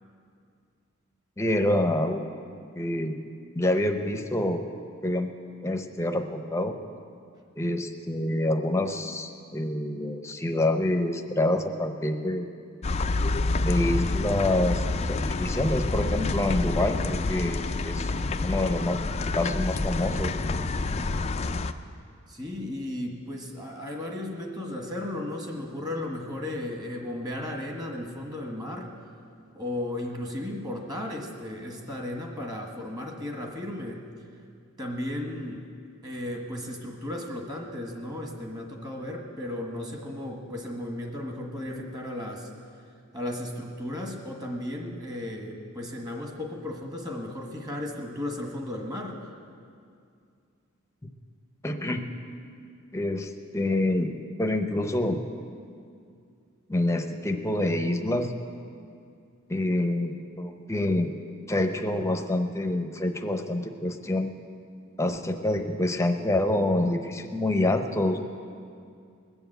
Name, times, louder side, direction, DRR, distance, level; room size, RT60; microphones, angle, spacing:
voice 1, 1.4-2.2 2.8-3.1 3.5-4.6 5.0-5.3 5.6-6.7 7.6-12.5 13.6-18.1 18.4-19.0 19.3-20.3 51.6-52.0 52.9-54.1 54.4-55.2 56.7-58.3 59.5-61.1 61.5-64.3 65.0-68.2, left 1 dB, 15° left, 5 dB, 0.8 m, -27 dB
sound 1, 12.8-21.7, left 3 dB, 30° left, 0.4 m, -28 dB
voice 2, 22.3-28.9 29.5-34.0 34.8-35.6 36.0-42.5 43.1-49.3, left 1 dB, 20° right, 1 dB, 1.6 m, -35 dB
20.0 x 7.1 x 8.0 m, 2.4 s
head